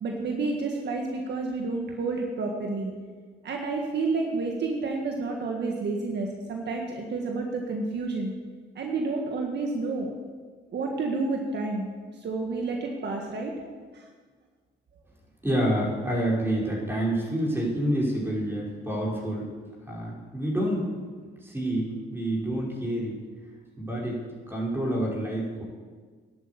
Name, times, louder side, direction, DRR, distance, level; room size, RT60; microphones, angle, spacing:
voice 1, 0.0-2.9 3.4-8.3 8.8-10.1 10.7-11.9 12.2-13.5, right 3 dB, 60° right, 1 dB, 1.7 m, -30 dB
voice 2, 15.4-19.5 19.9-20.9 21.4-23.2 23.8-24.2 24.5-25.6, right 1 dB, 10° right, -4 dB, 5.2 m, -28 dB
11.0 x 8.8 x 8.4 m, 1.5 s
cardioid pair, 90°, 20 cm